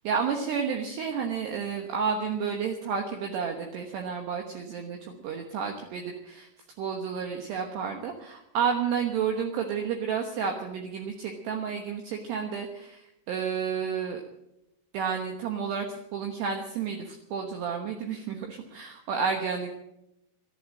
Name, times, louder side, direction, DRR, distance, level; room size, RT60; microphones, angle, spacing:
voice 1, 0.0-6.5 6.8-14.2 14.9-19.8, right 6 dB, 70° right, 3 dB, 2.9 m, -31 dB
13.5 x 12.5 x 7.6 m, 0.83 s
omnidirectional pair, 5.7 m